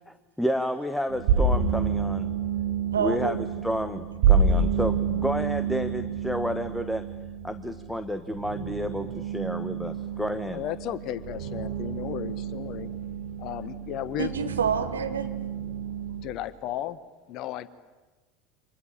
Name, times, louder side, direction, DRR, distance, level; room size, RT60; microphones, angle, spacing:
voice 1, 0.1-2.3 3.0-7.1 7.4-10.6, equal, ahead, 10 dB, 1.2 m, -30 dB
sound 1, 1.1-16.2, right 5 dB, 55° right, 7.6 m, -29 dB
voice 2, 2.9-3.5 14.2-15.3, right 7 dB, 75° right, 6 dB, 2.0 m, -28 dB
voice 3, 10.5-12.9 13.4-14.3 16.2-17.0 17.3-17.7, left 12 dB, 45° left, 16 dB, 1.1 m, -34 dB
29.5 x 25.5 x 7.4 m, 1.2 s
figure-of-eight pair, 75°, 0 cm